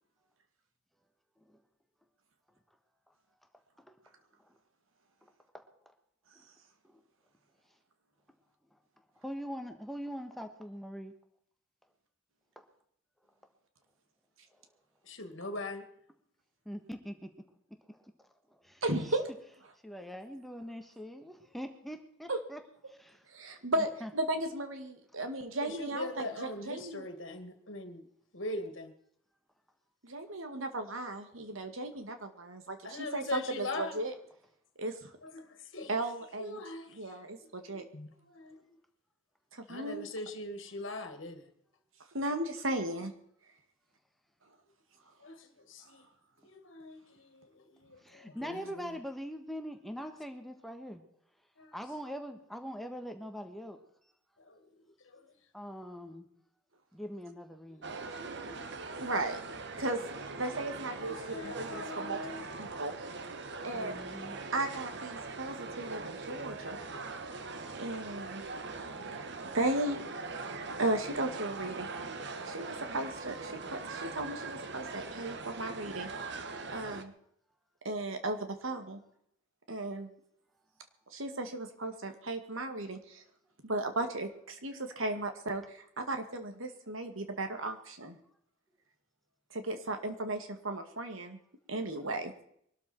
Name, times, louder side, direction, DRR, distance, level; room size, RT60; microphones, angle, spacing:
voice 1, 5.2-5.7 6.8-7.0 8.7-8.8 9.1-11.1 12.5-12.7 16.6-17.3 17.9-19.1 19.8-22.6 23.0-23.2 24.0-24.1 48.0-51.0 51.7-53.8 55.5-56.3 56.9-57.9 63.7-64.4, equal, ahead, 1.4 m, -43 dB
voice 2, 15.0-15.8 25.6-28.0 28.3-28.9 32.8-34.0 35.2-35.9 36.4-37.2 37.6-38.6 39.7-41.5 45.2-46.1 46.4-48.7 50.0-50.1 51.6-51.8 54.4-55.3 58.1-58.7 60.7-60.8 61.0-62.4, left 2 dB, 70° left, 2.1 m, -42 dB
voice 3, 18.8-19.3 22.3-22.4 23.3-27.1 30.0-34.1 34.8-35.1 35.9-36.6 37.0-37.8 39.5-40.1 42.1-43.1 59.0-59.4 59.8-60.0 60.4-62.2 62.6-62.9 63.6-64.0 64.5-66.8 67.8-68.4 69.1-69.3 69.5-70.0 70.8-71.9 72.4-76.3 76.7-77.1 77.8-79.0 79.7-80.1 81.1-83.2 83.6-88.2 89.5-91.4 91.7-92.3, right 2 dB, 90° right, 2.3 m, -35 dB
sound 1, 57.8-77.0, right 3 dB, 60° right, 1.3 m, -41 dB
23.0 x 12.5 x 4.5 m
head